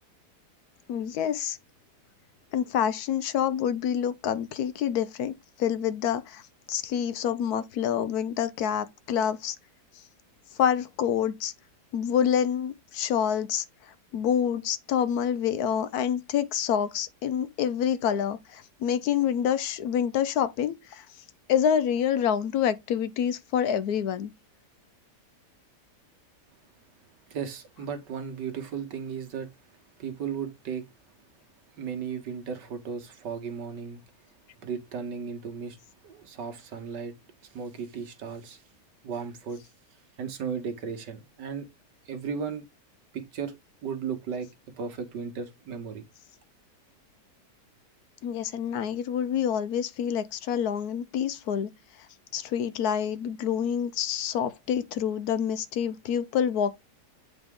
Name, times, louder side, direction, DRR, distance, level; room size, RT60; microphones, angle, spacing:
voice 1, 0.9-1.6 2.5-6.4 6.7-9.6 10.6-11.5 11.9-13.6 14.1-21.1 21.5-24.3 48.2-51.7 52.3-56.8, left 8 dB, 70° left, 1.1 m, -27 dB
voice 2, 27.3-29.5 30.0-30.8 31.8-34.0 34.6-35.8 36.0-37.2 37.4-38.6 39.0-39.6 40.2-41.7 42.1-42.7 43.1-43.6 43.8-44.5 44.8-46.0, right 6 dB, 90° right, 1.8 m, -35 dB
7.9 x 4.0 x 3.6 m
omnidirectional pair, 1.8 m